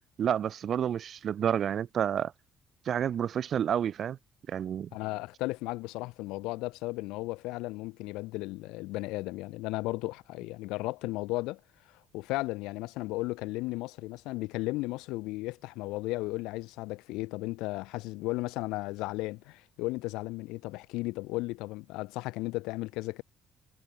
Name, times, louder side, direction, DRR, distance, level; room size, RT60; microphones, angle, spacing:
voice 1, 0.2-2.3 2.8-4.2 4.5-4.9, right 9 dB, 55° right, 3.5 m, -29 dB
voice 2, 4.9-11.6 12.1-23.2, left 21 dB, 90° left, 2.3 m, -35 dB
supercardioid pair, 80°, 0 cm